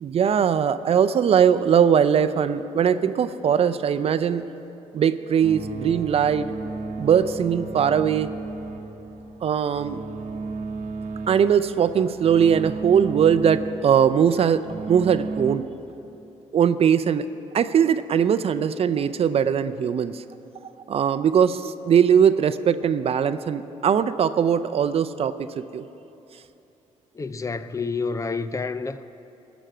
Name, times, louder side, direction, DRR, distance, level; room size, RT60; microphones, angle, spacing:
voice 1, 0.0-4.4 4.9-6.5 7.0-8.3 9.4-10.0 11.3-14.6 14.9-15.7 16.5-17.3 17.5-20.2 20.9-25.8, right 8 dB, 50° right, 0.5 m, -20 dB
sound 1, 5.4-15.5, right 3 dB, 70° right, 0.9 m, -34 dB
voice 2, 27.1-29.0, left 4 dB, 25° left, 0.4 m, -29 dB
18.0 x 6.2 x 7.6 m
cardioid pair, 95°, 13 cm